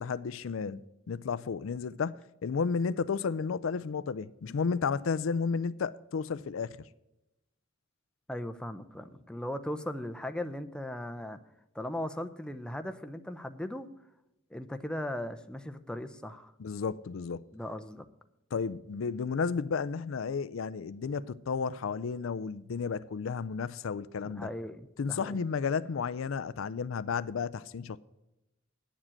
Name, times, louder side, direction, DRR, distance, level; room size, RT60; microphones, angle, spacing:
voice 1, 0.0-6.8 16.6-17.4 18.5-24.5 25.0-28.0, left 5 dB, 85° left, 0.4 m, -32 dB
voice 2, 8.3-11.4 11.7-13.9 14.5-16.5 17.5-18.1 24.2-25.4, left 1 dB, 5° left, 0.6 m, -38 dB
10.0 x 7.3 x 7.5 m
head